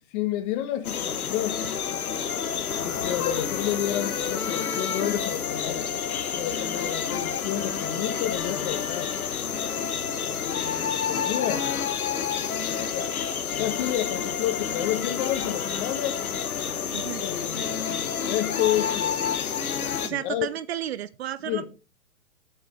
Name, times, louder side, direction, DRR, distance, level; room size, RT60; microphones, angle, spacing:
voice 1, 0.1-1.6 2.8-5.9 6.3-9.1 10.4-11.9 12.9-13.1 13.6-16.2 17.2-19.3 20.1-20.5 21.4-21.7, left 12 dB, 35° left, 1.4 m, -30 dB
sound 1, 0.8-20.1, left 7 dB, 80° left, 1.3 m, -29 dB
voice 2, 16.9-17.2 20.0-21.7, right 11 dB, 50° right, 0.5 m, -32 dB
7.8 x 5.8 x 4.7 m
hypercardioid pair, 130°, 42 cm